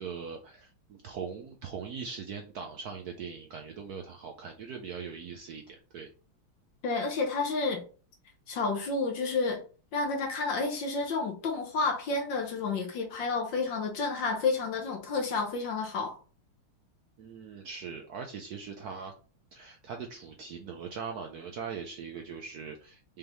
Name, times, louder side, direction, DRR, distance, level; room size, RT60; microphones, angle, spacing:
voice 1, 0.0-6.1 17.2-19.1 19.5-23.2, right 6 dB, 70° right, 0.9 m, -41 dB
voice 2, 6.8-7.8 8.5-9.6 9.9-16.2, left 4 dB, 65° left, 1.5 m, -30 dB
5.2 x 3.4 x 3.0 m
omnidirectional pair, 2.3 m